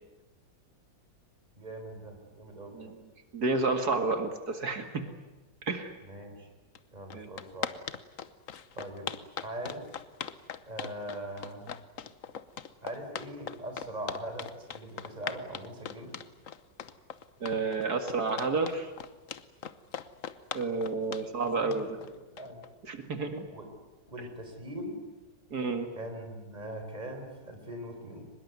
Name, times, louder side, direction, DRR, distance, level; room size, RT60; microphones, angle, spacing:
voice 1, 1.6-2.9 6.0-6.5 6.9-7.7 8.8-9.1 9.4-9.9 10.7-11.7 12.8-16.2 21.6-22.6 23.5-23.7 24.1-25.0 26.0-28.3, right 1 dB, 20° right, 4 dB, 4.5 m, -41 dB
voice 2, 3.3-5.0 5.6-5.9 7.1-7.3 17.4-18.9 20.5-21.9 22.8-23.4 25.5-25.9, right 3 dB, 55° right, 7 dB, 2.5 m, -30 dB
sound 1, 6.7-6.8 7.1-22.7, left 8 dB, 50° left, 1.2 m, -39 dB
24.0 x 21.0 x 9.5 m, 1.2 s
omnidirectional pair, 2.0 m